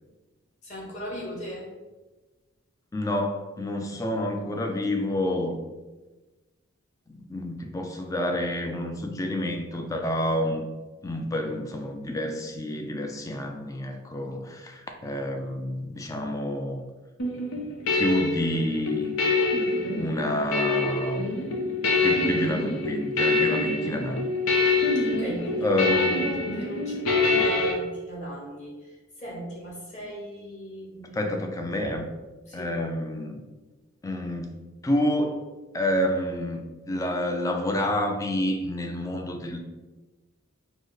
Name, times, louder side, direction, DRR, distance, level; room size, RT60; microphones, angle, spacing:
voice 1, 0.6-1.7 25.0-31.3 32.5-32.8, equal, 35° left, -4 dB, 1.2 m, -38 dB
voice 2, 2.9-5.6 7.1-10.7 11.0-16.8 17.9-19.1 20.0-21.2 22.0-24.3 25.6-26.3 31.1-32.1 32.5-33.4 34.0-35.4 35.7-39.6, left 1 dB, 15° left, 4 dB, 0.3 m, -28 dB
sound 1, 17.2-27.7, left 3 dB, 85° left, 0.8 m, -25 dB
4.9 x 2.1 x 4.0 m, 1.2 s
head